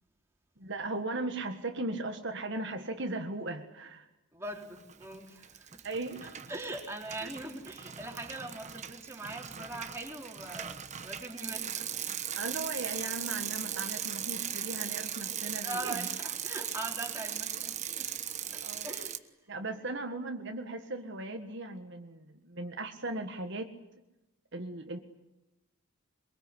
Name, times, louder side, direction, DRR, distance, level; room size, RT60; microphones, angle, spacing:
voice 1, 0.6-4.1 5.8-6.5 7.2-7.3 12.4-16.1 18.6-18.9 19.5-23.7 24.5-25.0, right 2 dB, 60° right, 4 dB, 1.7 m, -37 dB
voice 2, 4.3-5.9 6.2-12.0 15.6-18.1 18.5-19.5, right 2 dB, 10° right, 0 dB, 3.8 m, -42 dB
Bicycle, 4.8-5.2 5.4-19.2, right 9 dB, 35° right, 1.2 m, -38 dB
24.0 x 23.0 x 9.7 m, 0.97 s
head